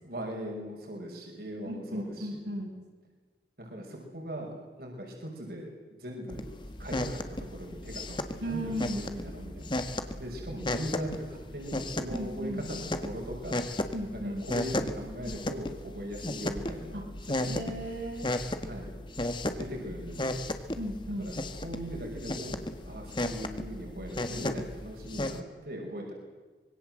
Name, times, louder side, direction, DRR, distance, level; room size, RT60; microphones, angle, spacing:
voice 1, 0.0-2.4 3.6-6.4 6.8-9.7 10.2-13.7 14.1-17.5 18.6-18.9 19.5-20.3 21.2-26.1, equal, 60° right, 0 dB, 5.9 m, -40 dB
voice 2, 1.7-2.8 8.4-9.1 12.1-12.6 13.9-14.4 16.9-17.1 17.5-18.3 20.8-21.3, equal, 75° right, 0 dB, 6.2 m, -36 dB
sound 1, 6.3-25.4, left 1 dB, 25° left, 1.6 m, -35 dB
25.0 x 23.0 x 7.8 m, 1.3 s
head